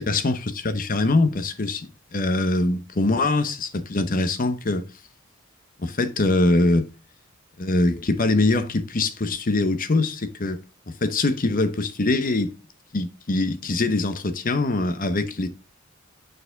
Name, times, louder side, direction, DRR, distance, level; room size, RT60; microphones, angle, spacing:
voice 1, 0.0-4.8 5.8-6.9 7.6-12.5 12.9-15.5, left 2 dB, 45° left, 0.8 m, -23 dB
6.7 x 4.8 x 3.8 m
head